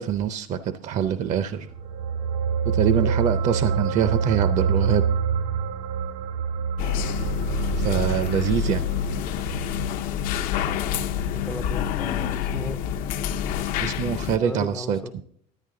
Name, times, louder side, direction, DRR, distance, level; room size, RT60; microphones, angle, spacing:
voice 1, 0.0-1.7 2.6-5.0 7.8-8.8 13.8-15.2, right 8 dB, 50° right, 0.5 m, -25 dB
sound 1, 1.7-12.3 12.6-12.8, right 6 dB, 75° right, 1.1 m, -27 dB
sound 2, 6.8-14.4, left 8 dB, 65° left, 0.6 m, -27 dB
voice 2, 11.3-12.8 14.4-15.2, left 2 dB, 5° left, 0.4 m, -36 dB
11.0 x 9.7 x 3.7 m
cardioid pair, 140°, 15 cm